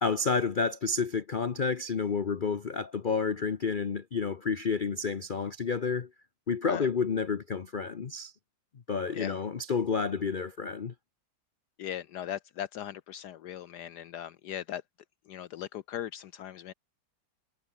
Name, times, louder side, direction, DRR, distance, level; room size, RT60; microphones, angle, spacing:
voice 1, 0.0-6.1 6.5-8.3 8.9-10.9, left 5 dB, 45° left, 0.6 m, -30 dB
voice 2, 11.8-14.8 15.3-16.7, left 10 dB, 70° left, 1.2 m, -39 dB
omnidirectional pair, 2.0 m